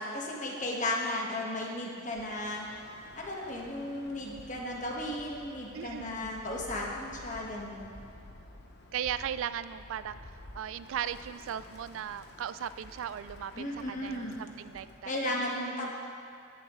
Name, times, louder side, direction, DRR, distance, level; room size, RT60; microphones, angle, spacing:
voice 1, 0.0-2.7 3.1-7.9 13.5-14.3 15.0-15.9, left 1 dB, 40° left, -2 dB, 1.4 m, -35 dB
Bird, 2.0-15.1, left 1 dB, 55° left, 0.8 m, -51 dB
voice 2, 5.7-6.2 8.9-10.2 10.5-15.9, right 9 dB, 75° right, 14 dB, 0.3 m, -38 dB
18.5 x 7.4 x 3.1 m, 2.4 s
head